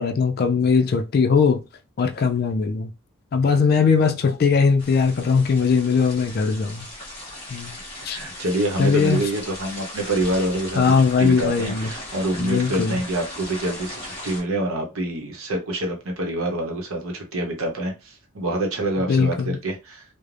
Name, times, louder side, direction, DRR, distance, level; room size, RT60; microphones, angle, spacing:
voice 1, 0.0-1.6 2.0-2.9 3.3-6.9 7.5-7.7 8.0-8.2 8.8-9.2 10.8-11.9 12.4-13.0 19.1-19.6, left 5 dB, 45° left, 0.3 m, -20 dB
sound 1, 4.8-14.4, left 1 dB, 25° left, 1.1 m, -37 dB
voice 2, 8.1-20.0, right 1 dB, 80° right, 0.8 m, -26 dB
3.1 x 2.0 x 2.5 m
head